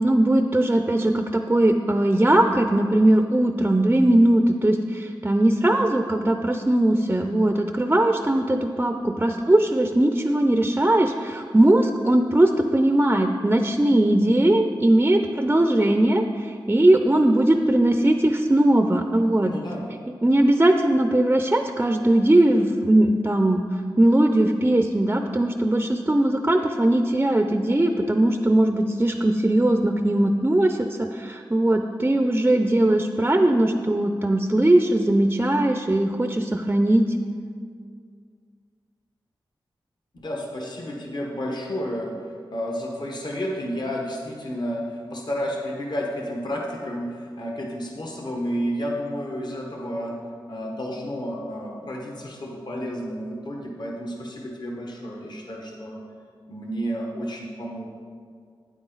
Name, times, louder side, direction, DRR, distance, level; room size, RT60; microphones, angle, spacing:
voice 1, 0.0-19.5 20.2-23.6 24.0-37.0, right 1 dB, 20° right, 6 dB, 0.5 m, -20 dB
voice 2, 19.4-19.8 40.1-42.2 42.5-50.2 50.5-56.0 56.5-57.9, equal, 55° left, -1 dB, 1.3 m, -31 dB
9.0 x 8.9 x 3.9 m, 2.1 s
wide cardioid pair, 75°, 9 cm